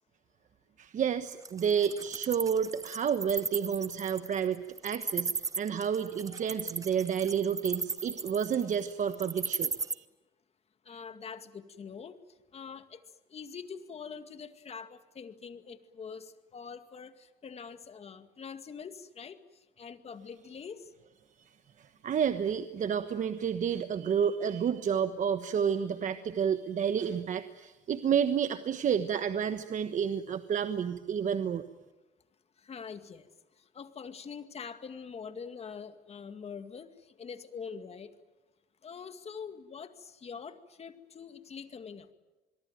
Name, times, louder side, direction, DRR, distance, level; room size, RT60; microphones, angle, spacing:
voice 1, 0.8-10.0 21.8-31.6, right 7 dB, 45° right, 9 dB, 1.3 m, -30 dB
Wild animals, 1.3-9.9, right 4 dB, 20° right, 0.8 m, -35 dB
voice 2, 10.9-12.2 12.5-13.0 13.3-19.4 19.8-20.9 32.6-33.3 33.7-38.1 38.8-42.1, left 6 dB, 40° left, 9 dB, 2.2 m, -44 dB
26.5 x 22.5 x 9.2 m, 1.1 s
cardioid pair, 110°, 17 cm